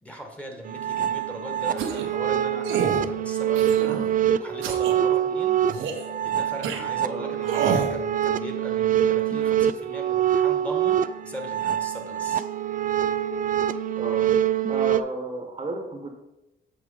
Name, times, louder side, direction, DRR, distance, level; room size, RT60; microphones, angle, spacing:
voice 1, 0.0-12.4, right 1 dB, 5° left, 2 dB, 1.6 m, -39 dB
sound 1, 0.6-15.0, right 10 dB, 45° right, 0.4 m, -25 dB
sound 2, 1.8-2.1 2.6-3.0 3.6-4.1 4.6-4.9 5.7-6.1 6.6-6.8 7.4-7.9, right 6 dB, 85° right, 1.0 m, -28 dB
voice 2, 13.7-14.4 14.7-16.1, right 2 dB, 25° right, 3 dB, 1.2 m, -33 dB
7.7 x 4.7 x 5.0 m, 0.93 s
cardioid pair, 90°, 20 cm